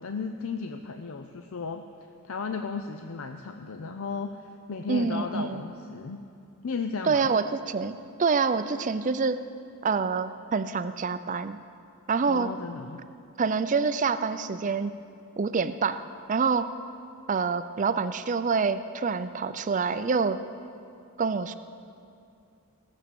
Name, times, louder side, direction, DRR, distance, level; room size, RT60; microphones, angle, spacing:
voice 1, 0.0-1.8 2.2-6.2 6.6-7.3 12.3-13.1, left 4 dB, 70° left, 6 dB, 0.5 m, -35 dB
voice 2, 4.9-5.6 7.0-9.4 9.8-11.6 12.1-12.5 13.4-14.9 15.4-16.0 16.3-16.7 17.3-20.4 21.2-21.6, right 5 dB, 35° right, 12 dB, 0.4 m, -26 dB
17.5 x 7.2 x 6.9 m, 2.5 s
head